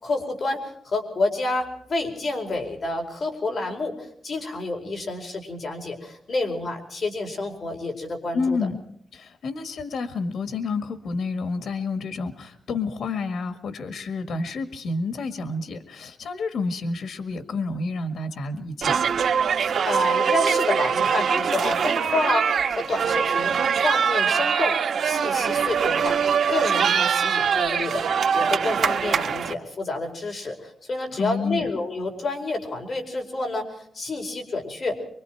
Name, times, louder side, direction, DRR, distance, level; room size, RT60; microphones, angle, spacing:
voice 1, 0.0-3.9 4.2-8.6 19.6-26.2 26.5-28.1 28.3-34.9, left 2 dB, 40° left, 2 dB, 4.7 m, -29 dB
voice 2, 8.3-8.8 9.1-19.0 31.1-31.7, left 3 dB, 80° left, 9 dB, 1.7 m, -29 dB
sound 1, 18.8-29.5, right 7 dB, 70° right, 1.3 m, -23 dB
25.0 x 24.0 x 4.6 m, 0.65 s
wide cardioid pair, 155°, 0 cm